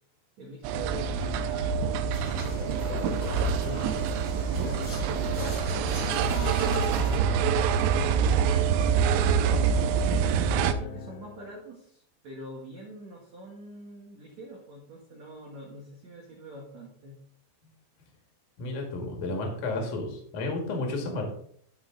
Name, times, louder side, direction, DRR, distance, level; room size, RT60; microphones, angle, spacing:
voice 1, 0.4-2.2 2.9-3.6 4.3-9.7 10.4-17.2, right 3 dB, 75° right, -1 dB, 1.6 m, -44 dB
sound 1, 0.6-10.7, right 6 dB, 90° right, 3.1 m, -26 dB
sound 2, 2.1-7.2, left 3 dB, 35° left, 1.4 m, -39 dB
sound 3, 4.8-11.7, left 3 dB, 80° left, 3.3 m, -44 dB
voice 2, 18.6-21.3, left 2 dB, 50° left, 2 dB, 2.7 m, -32 dB
12.0 x 5.9 x 3.9 m, 0.63 s
omnidirectional pair, 5.6 m